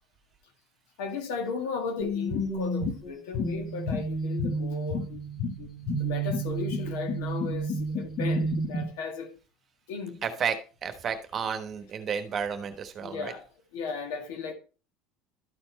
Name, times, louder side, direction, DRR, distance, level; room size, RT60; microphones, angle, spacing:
voice 1, 1.0-5.1 6.0-9.3 9.9-10.2 13.0-13.4 13.7-14.5, left 5 dB, 85° left, 1.7 m, -35 dB
sound 1, 2.0-8.8, right 1 dB, 40° left, 1.6 m, -30 dB
voice 2, 10.2-13.3, right 7 dB, 35° right, 1.2 m, -32 dB
12.5 x 4.4 x 4.1 m
cardioid pair, 135°, 0 cm